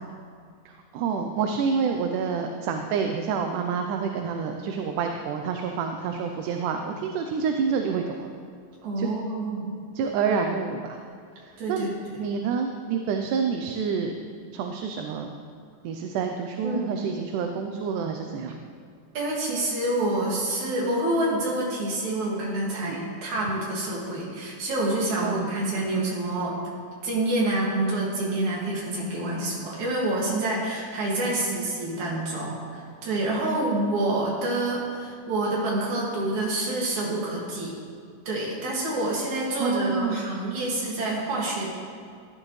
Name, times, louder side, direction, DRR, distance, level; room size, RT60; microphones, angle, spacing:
voice 1, 0.7-8.3 9.0-9.1 10.0-11.0 11.4-11.9 12.2-14.1 14.5-15.3 15.8-18.6 22.7-23.0 25.2-25.5 31.2-31.6 39.6-40.4, right 6 dB, 80° right, 4 dB, 2.1 m, -28 dB
voice 2, 8.8-9.8 11.6-11.9 16.6-16.9 19.2-26.6 27.0-37.7 38.3-41.7, right 2 dB, 60° right, -4 dB, 3.5 m, -27 dB
16.0 x 11.0 x 3.2 m, 2.2 s
omnidirectional pair, 3.8 m